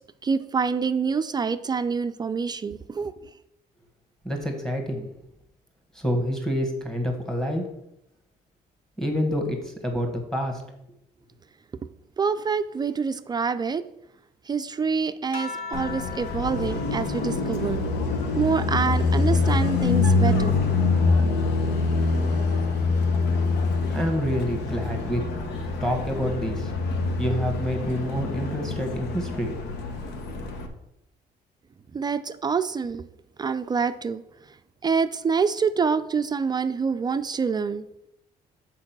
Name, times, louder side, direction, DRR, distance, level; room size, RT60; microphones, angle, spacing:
voice 1, 0.2-3.1 12.2-13.8 14.5-17.8 18.4-20.6 31.9-33.1 33.4-34.2 34.8-37.8, right 5 dB, 25° right, 10 dB, 0.4 m, -26 dB
voice 2, 4.2-5.1 5.9-7.7 9.0-10.6 23.9-25.2 25.8-26.7 27.2-29.6, equal, 5° left, 3 dB, 1.6 m, -27 dB
sound 1, 15.3-20.1 20.6-22.3 23.5-24.0, left 5 dB, 55° left, 0.9 m, -42 dB
Car passing by, 15.7-30.7, left 3 dB, 85° left, 1.1 m, -25 dB
6.4 x 4.7 x 6.0 m, 0.83 s
cardioid pair, 110°, 17 cm